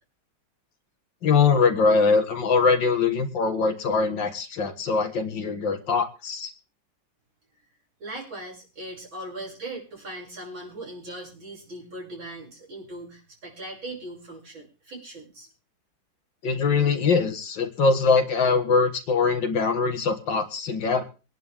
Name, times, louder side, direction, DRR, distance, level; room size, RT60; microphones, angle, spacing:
voice 1, 1.2-6.5 16.4-21.0, left 4 dB, 70° left, 6 dB, 2.3 m, -22 dB
voice 2, 8.0-15.5, right 1 dB, 85° right, -3 dB, 7.2 m, -39 dB
24.0 x 11.0 x 3.6 m, 0.33 s
omnidirectional pair, 2.1 m